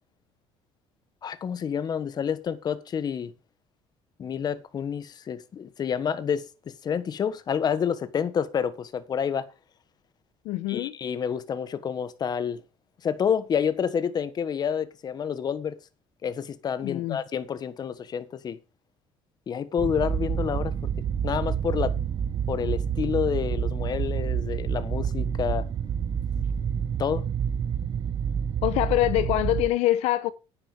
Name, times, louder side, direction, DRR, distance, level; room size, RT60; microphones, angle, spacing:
voice 1, 1.2-3.3 4.2-9.5 10.7-12.6 13.0-15.8 16.2-18.6 19.5-20.9 21.2-21.9 22.5-25.7 27.0-27.2, left 7 dB, 40° left, 1.4 m, -29 dB
voice 2, 10.4-11.0 16.8-17.2 28.6-30.3, left 15 dB, 80° left, 0.8 m, -24 dB
sound 1, 19.8-29.7, right 8 dB, 40° right, 0.8 m, -28 dB
9.7 x 9.7 x 5.0 m
cardioid pair, 115°, 11 cm